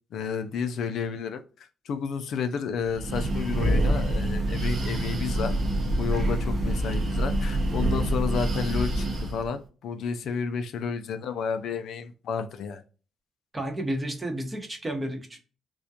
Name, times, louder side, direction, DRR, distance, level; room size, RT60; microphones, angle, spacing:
voice 1, 0.1-5.5 5.8-12.8, left 6 dB, 70° left, 0.3 m, -31 dB
Breathing, 2.9-9.5, right 1 dB, 55° right, 0.7 m, -26 dB
voice 2, 13.5-15.4, right 1 dB, 20° right, 0.7 m, -31 dB
2.3 x 2.1 x 2.6 m
cardioid pair, 90°, 0 cm